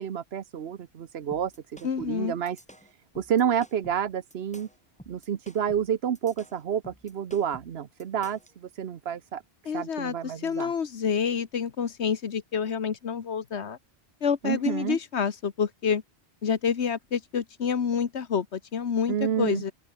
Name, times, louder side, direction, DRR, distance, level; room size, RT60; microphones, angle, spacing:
voice 1, 0.0-2.6 3.2-4.7 5.1-9.4 9.7-10.7 14.4-15.0 19.1-19.6, right 8 dB, 70° right, 1.1 m, -29 dB
sound 1, 1.3-8.5, equal, 5° left, 4.7 m, -51 dB
voice 2, 1.8-2.3 9.7-13.8 14.2-16.0 16.4-19.7, left 6 dB, 85° left, 1.5 m, -28 dB
open air
omnidirectional pair, 1.1 m